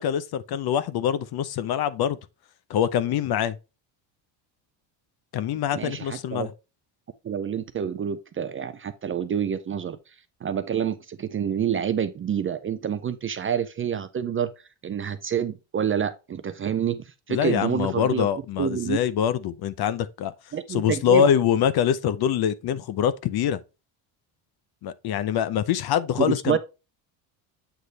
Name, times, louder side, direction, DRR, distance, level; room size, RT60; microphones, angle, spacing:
voice 1, 0.0-2.2 2.7-3.6 5.3-6.5 17.3-20.3 20.7-23.6 24.8-26.6, left 9 dB, 50° left, 0.7 m, -24 dB
voice 2, 5.7-6.5 7.2-10.0 10.4-14.5 14.8-18.3 18.6-19.0 20.5-21.3 26.2-26.6, right 8 dB, 30° right, 0.4 m, -27 dB
8.1 x 3.2 x 4.0 m
cardioid pair, 110°, 48 cm